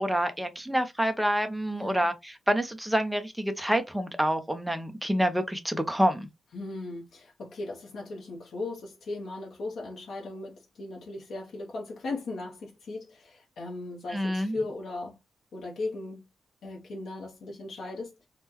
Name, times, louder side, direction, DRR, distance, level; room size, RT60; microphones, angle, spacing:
voice 1, 0.0-6.3 14.1-14.6, equal, 5° right, 0.5 m, -27 dB
voice 2, 1.7-2.1 6.5-15.2 15.5-16.2 16.6-18.3, left 2 dB, 75° left, 0.7 m, -37 dB
3.6 x 2.1 x 2.9 m
wide cardioid pair, 125°, 0 cm